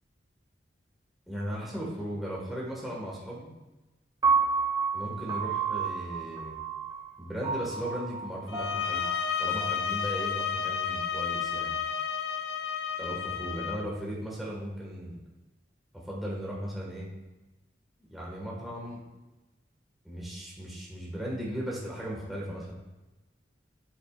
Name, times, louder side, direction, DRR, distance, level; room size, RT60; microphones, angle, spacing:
voice 1, 1.3-3.5 4.9-6.5 7.2-9.0 9.4-11.8 13.0-15.2 15.9-17.1 18.0-19.0 20.0-22.7, equal, ahead, -6 dB, 1.7 m, -37 dB
Piano, 4.2-10.4, right 5 dB, 25° right, 1.1 m, -31 dB
sound 1, 8.5-13.8, left 7 dB, 65° left, 0.4 m, -31 dB
8.5 x 7.9 x 2.5 m, 1.1 s
head